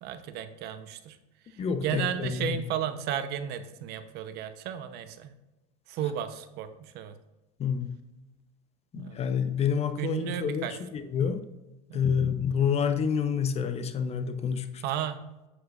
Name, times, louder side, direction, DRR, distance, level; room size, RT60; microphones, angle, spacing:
voice 1, 0.0-1.2 1.5-5.3 5.9-7.1 8.9-9.2 10.0-10.8 11.9-12.0 14.8-15.2, right 9 dB, 55° right, 11 dB, 0.8 m, -34 dB
voice 2, 1.6-2.5 7.6-8.0 8.9-10.7 10.9-11.4 11.9-14.8, left 7 dB, 30° left, 9 dB, 0.8 m, -28 dB
8.3 x 7.9 x 2.5 m, 1.0 s
supercardioid pair, 115°, 20 cm